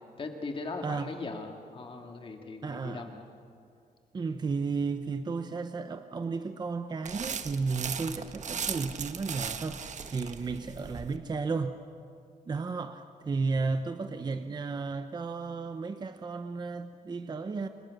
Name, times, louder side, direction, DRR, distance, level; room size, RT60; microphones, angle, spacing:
voice 1, 0.2-3.3, left 3 dB, 35° left, 3 dB, 2.2 m, -39 dB
voice 2, 2.6-3.1 4.1-11.8 12.5-17.7, right 4 dB, 30° right, 9 dB, 0.8 m, -33 dB
sound 1, 7.0-11.2, right 7 dB, 55° right, 1.3 m, -37 dB
29.5 x 27.0 x 6.6 m, 2.4 s
wide cardioid pair, 170°, 15 cm